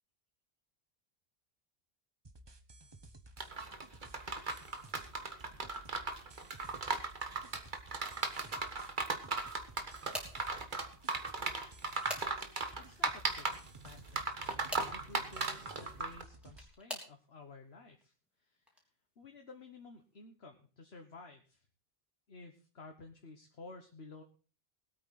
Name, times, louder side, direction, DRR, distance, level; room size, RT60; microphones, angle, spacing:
sound 1, 2.2-16.7, right 1 dB, 25° right, 1.1 m, -56 dB
sound 2, 3.4-16.2, right 3 dB, 50° right, 1.6 m, -37 dB
sound 3, 9.5-10.5 11.4-12.7 14.3-15.0 16.1-17.2 17.9-18.3 18.7-18.8 20.1-20.2, equal, ahead, 3.7 m, -45 dB
voice 1, 12.9-14.4 14.9-18.1 18.4-18.7 19.2-21.6 22.3-24.2, left 3 dB, 90° left, 4 dB, 1.6 m, -53 dB
20.5 x 8.8 x 4.1 m, 0.37 s
omnidirectional pair, 1.0 m